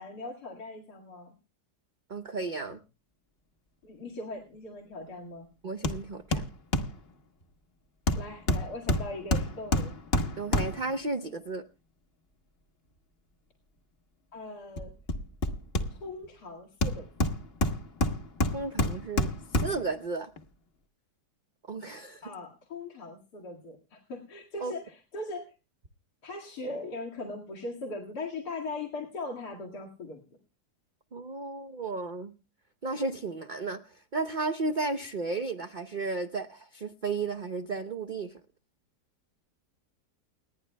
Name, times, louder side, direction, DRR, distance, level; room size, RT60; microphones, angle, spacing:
voice 1, 0.0-1.3 3.8-5.5 8.1-10.0 14.3-14.9 15.9-17.3 22.2-25.5 26.2-30.2, left 2 dB, 75° left, -2 dB, 2.6 m, -40 dB
voice 2, 2.1-2.8 5.6-6.4 10.4-11.6 18.5-19.3 19.6-20.3 21.7-22.3 24.6-24.7 31.1-32.3 32.8-38.3, right 3 dB, 45° right, 9 dB, 0.7 m, -33 dB
Hammer, 5.8-6.0 6.3-7.0 8.1-11.0 14.8-16.2 16.8-19.9 20.4-20.5, left 1 dB, 40° left, 1.3 m, -28 dB
29.5 x 10.0 x 2.2 m, 0.31 s
omnidirectional pair, 1.8 m